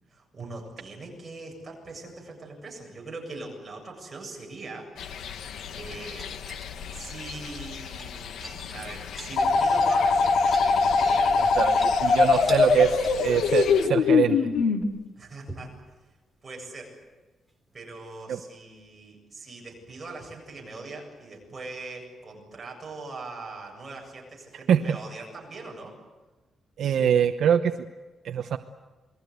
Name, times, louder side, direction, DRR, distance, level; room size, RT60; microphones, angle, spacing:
voice 1, 0.1-4.9 5.2-5.4 5.7-6.3 6.9-8.4 8.7-11.4 12.0-12.5 15.2-15.9 16.4-16.9 17.7-25.9, right 3 dB, 20° right, -1 dB, 7.7 m, -41 dB
sound 1, 5.0-13.9, left 7 dB, 80° left, 1.5 m, -38 dB
sound 2, 6.2-7.0 7.9-9.4 9.7-9.8 10.1-11.3 11.7-12.0 12.3-12.8 13.0-13.4 15.5-15.8 17.5-17.6, right 1 dB, 5° left, 3.9 m, -43 dB
sound 3, 9.4-14.8, left 4 dB, 65° left, 2.2 m, -21 dB
voice 2, 11.4-14.4 18.3-18.4 24.7-25.0 26.8-27.7 28.2-28.6, right 8 dB, 65° right, 7 dB, 0.9 m, -24 dB
28.0 x 21.5 x 8.1 m, 1.2 s
wide cardioid pair, 180°, 0 cm